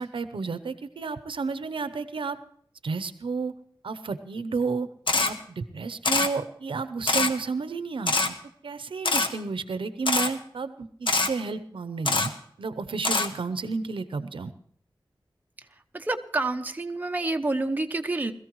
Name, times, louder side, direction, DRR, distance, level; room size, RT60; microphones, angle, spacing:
voice 1, 0.0-2.4 2.8-3.5 3.8-4.9 5.2-8.3 8.6-12.3 12.6-14.5, right 4 dB, 90° right, 13 dB, 0.7 m, -31 dB
Camera, 5.1-5.3 6.0-6.3 7.1-7.3 8.1-8.3 9.0-9.3 10.1-10.3 11.1-11.3 12.0-12.3 13.0-13.3, left 3 dB, 75° left, 1.2 m, -23 dB
voice 2, 15.9-18.3, right 2 dB, 20° right, 5 dB, 0.9 m, -28 dB
21.0 x 14.0 x 3.1 m, 0.62 s
wide cardioid pair, 100°, 9 cm